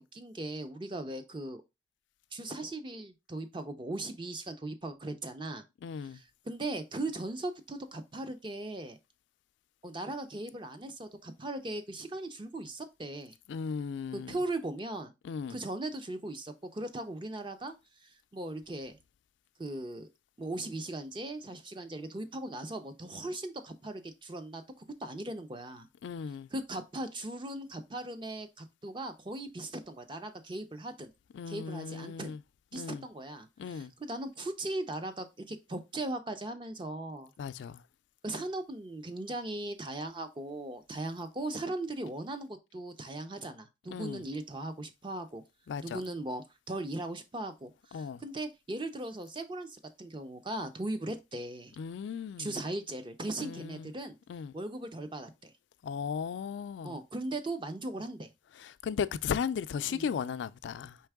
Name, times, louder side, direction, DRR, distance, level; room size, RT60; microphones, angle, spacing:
voice 1, 0.0-1.6 2.3-5.6 6.0-9.0 9.8-13.3 14.1-15.1 15.5-17.8 18.3-18.9 19.6-20.1 20.4-25.9 26.5-31.1 31.5-32.3 32.7-37.3 38.2-45.4 45.8-51.7 52.4-54.2 54.5-55.5 56.8-58.3 59.9-60.1, right 2 dB, 25° right, 0.5 m, -38 dB
voice 2, 5.8-6.2 13.5-14.4 15.2-15.5 26.0-26.5 31.3-32.4 32.7-33.0 33.6-33.9 37.4-37.8 43.9-44.2 45.7-46.0 47.9-48.2 51.8-52.5 53.4-53.9 54.3-54.5 55.8-57.0 58.6-61.0, left 6 dB, 85° left, 0.3 m, -36 dB
4.5 x 3.3 x 3.5 m
head